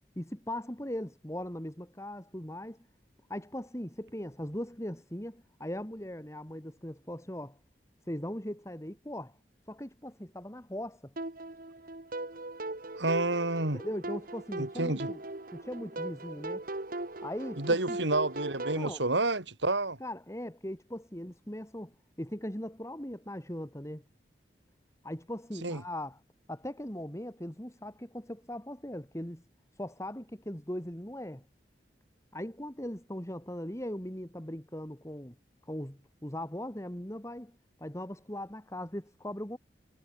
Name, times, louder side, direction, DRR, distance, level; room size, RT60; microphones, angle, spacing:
voice 1, 0.2-2.8 3.3-7.6 8.1-9.4 9.7-11.1 13.7-15.2 15.5-16.7 17.2-18.0 18.8-19.0 20.0-24.0 25.0-26.2 26.5-29.4 29.7-31.4 32.3-35.3 35.6-39.6, left 1 dB, 15° left, 3.0 m, -39 dB
sound 1, 11.2-18.8, right 2 dB, 50° right, 1.6 m, -39 dB
voice 2, 13.0-13.8 14.6-15.1 17.6-20.0 25.6-25.8, right 2 dB, 85° right, 3.9 m, -29 dB
head